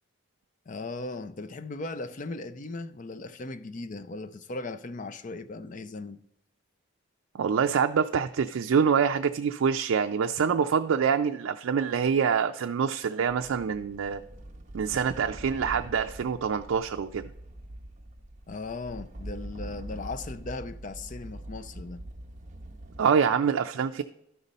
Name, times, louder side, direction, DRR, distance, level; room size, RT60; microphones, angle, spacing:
voice 1, 0.7-6.2 18.5-22.0, left 3 dB, 40° left, 0.4 m, -38 dB
voice 2, 7.3-14.2 14.7-17.3 23.0-24.0, right 6 dB, 85° right, 0.4 m, -25 dB
sound 1, 13.3-23.0, right 1 dB, 35° right, 0.7 m, -43 dB
12.5 x 5.3 x 4.1 m
head